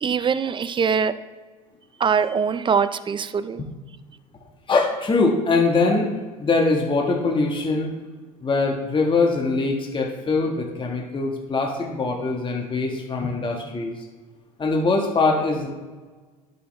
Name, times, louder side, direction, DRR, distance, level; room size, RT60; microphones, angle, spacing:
voice 1, 0.0-1.1 2.0-3.6, right 6 dB, 25° right, 13 dB, 0.5 m, -22 dB
voice 2, 4.7-6.1 6.4-7.9 8.4-14.0 14.6-15.7, left 3 dB, 25° left, 1 dB, 1.5 m, -22 dB
11.0 x 5.5 x 3.3 m, 1.4 s
hypercardioid pair, 75°, 19 cm